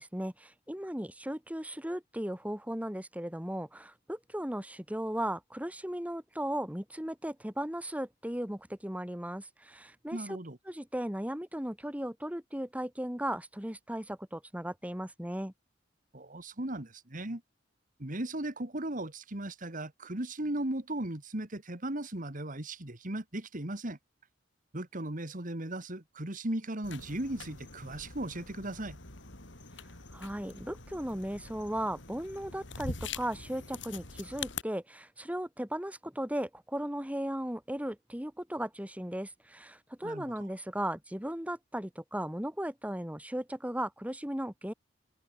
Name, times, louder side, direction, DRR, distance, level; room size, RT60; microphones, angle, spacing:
voice 1, 0.0-10.4 10.7-15.5 30.1-44.7, right 1 dB, 5° right, 2.2 m, -36 dB
voice 2, 10.1-10.6 16.1-17.4 18.0-24.0 24.7-29.0 40.0-40.3, right 1 dB, 45° right, 2.4 m, -37 dB
sound 1, 26.8-34.6, left 4 dB, 65° left, 4.4 m, -44 dB
head